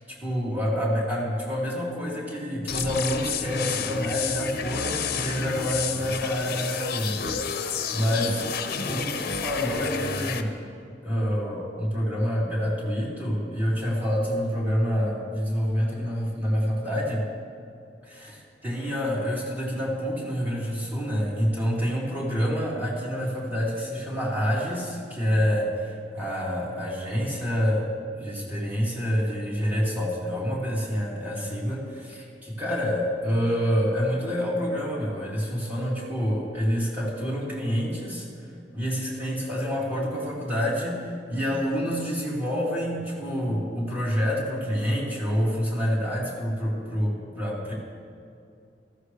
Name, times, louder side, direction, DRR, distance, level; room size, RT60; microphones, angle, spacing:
voice 1, 0.1-8.5 8.9-10.5 11.0-17.2 18.0-47.7, equal, 10° right, -6 dB, 3.8 m, -27 dB
sound 1, 2.7-10.4, left 6 dB, 60° left, 0.9 m, -30 dB
18.5 x 14.5 x 3.3 m, 2.5 s
head